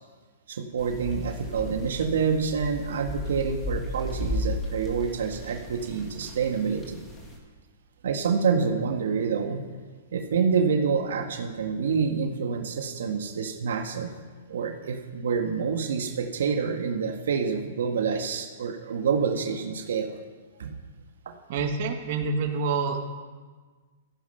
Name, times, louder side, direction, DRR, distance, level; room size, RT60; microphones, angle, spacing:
voice 1, 0.5-7.0 8.0-9.6 10.1-14.1 14.5-20.1 20.6-20.7 21.2-21.3, right 6 dB, 75° right, 4 dB, 1.8 m, -27 dB
sound 1, 0.8-7.4, left 1 dB, 10° left, 2.3 m, -35 dB
voice 2, 21.5-23.0, right 4 dB, 45° right, 2 dB, 1.9 m, -27 dB
15.0 x 13.5 x 5.8 m, 1.4 s
hypercardioid pair, 165°, 0 cm